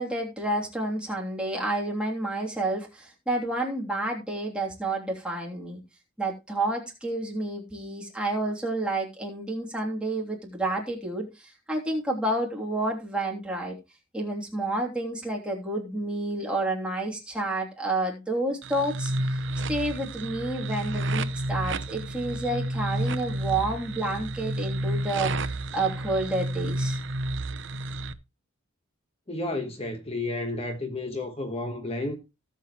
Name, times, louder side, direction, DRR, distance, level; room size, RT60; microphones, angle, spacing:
voice 1, 0.0-5.8 6.2-13.8 14.1-19.4 19.7-25.3 25.7-27.0, right 2 dB, 5° right, 3.1 m, -30 dB
sound 1, 18.6-28.1, right 1 dB, 60° right, 0.8 m, -30 dB
voice 2, 29.3-32.2, left 2 dB, 30° left, 1.3 m, -31 dB
17.5 x 7.4 x 3.1 m
head